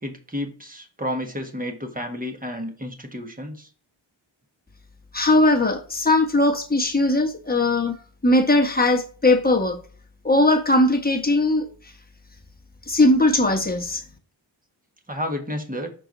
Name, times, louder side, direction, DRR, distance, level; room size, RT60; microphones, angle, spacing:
voice 1, 0.0-3.7 15.1-15.9, left 1 dB, 15° right, 1.5 m, -31 dB
voice 2, 5.1-8.0 8.2-9.8 10.2-11.7 12.9-14.0, left 2 dB, 20° left, 1.4 m, -19 dB
6.0 x 4.6 x 3.9 m
wide cardioid pair, 75°, 48 cm